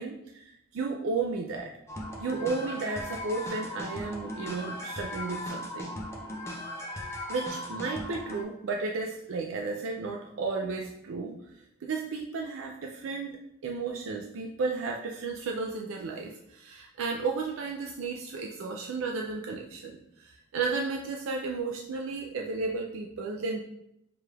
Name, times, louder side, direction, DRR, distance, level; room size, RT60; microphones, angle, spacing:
voice 1, 0.0-1.7 2.2-5.9 7.3-11.3 11.8-13.4 13.6-23.6, right 4 dB, 85° right, 1 dB, 0.4 m, -33 dB
sound 1, 1.9-8.4, left 1 dB, 15° left, 0.5 m, -38 dB
4.6 x 2.4 x 3.2 m, 0.80 s
head